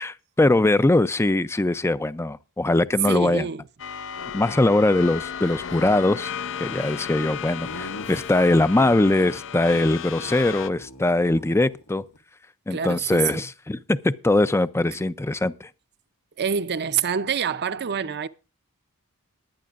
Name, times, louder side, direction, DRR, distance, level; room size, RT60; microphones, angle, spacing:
voice 1, 0.0-3.5 4.3-6.3 6.6-12.0 12.7-15.7, left 2 dB, 10° left, 0.5 m, -21 dB
voice 2, 3.1-3.6 12.7-13.5 14.9-15.0 16.4-18.3, right 7 dB, 50° right, 0.6 m, -26 dB
sound 1, 3.8-10.7, left 8 dB, 60° left, 0.6 m, -34 dB
Laughter, 7.6-9.4 9.7-9.9 10.1-10.3 10.6-12.2, left 1 dB, 80° left, 1.3 m, -41 dB
19.5 x 10.5 x 2.5 m
head